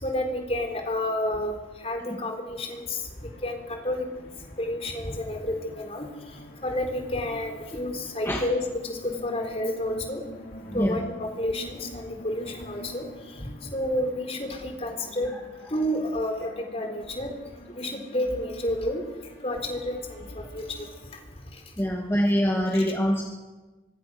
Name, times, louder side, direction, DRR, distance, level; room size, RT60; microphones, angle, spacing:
voice 1, 0.0-1.6 1.8-3.0 3.4-4.1 4.6-6.1 6.6-10.2 10.7-13.1 13.7-15.3 15.7-17.3 17.8-19.1 19.4-20.9 22.7-22.8, left 1 dB, 30° left, 4 dB, 4.0 m, -30 dB
sound 1, 2.8-21.6, equal, 55° left, 4.4 m, -47 dB
voice 2, 10.7-11.0 21.8-23.2, equal, 15° left, -1 dB, 2.4 m, -24 dB
24.5 x 24.5 x 6.4 m, 1.2 s
head